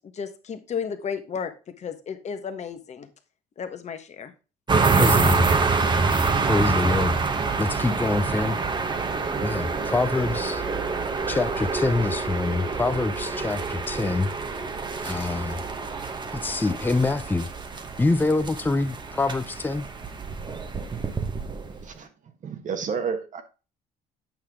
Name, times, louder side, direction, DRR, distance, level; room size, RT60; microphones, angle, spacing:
voice 1, 0.0-1.5 1.8-3.1 3.6-4.3, left 6 dB, 40° left, 1.3 m, -33 dB
sound 1, 4.7-21.9, right 4 dB, 25° right, 1.1 m, -26 dB
voice 2, 5.0-5.5 6.4-7.2 7.6-8.6 9.4-10.6 11.3-14.3 15.0-15.6 16.3-17.5 18.0-19.9, left 3 dB, 10° left, 0.6 m, -25 dB
voice 3, 22.4-23.4, right 6 dB, 50° right, 1.5 m, -30 dB
8.7 x 5.7 x 3.6 m
cardioid pair, 110°, 17 cm